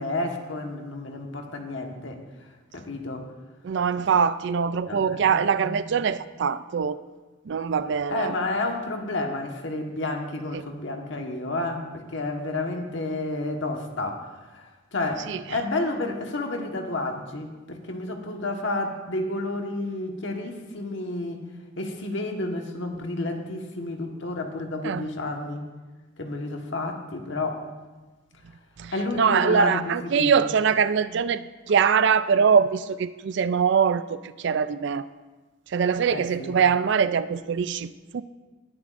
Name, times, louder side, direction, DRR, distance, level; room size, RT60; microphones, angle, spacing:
voice 1, 0.0-2.2 2.7-3.3 4.9-5.4 5.6-5.8 8.1-14.7 14.9-21.4 21.8-25.6 26.2-27.6 28.9-30.5 36.1-36.6, left 2 dB, 65° left, 1.4 m, -30 dB
voice 2, 3.6-7.0 7.5-8.3 10.5-10.6 15.3-15.4 24.8-25.1 28.8-35.1 35.7-38.2, right 6 dB, 60° right, 0.4 m, -23 dB
19.5 x 10.5 x 2.5 m
head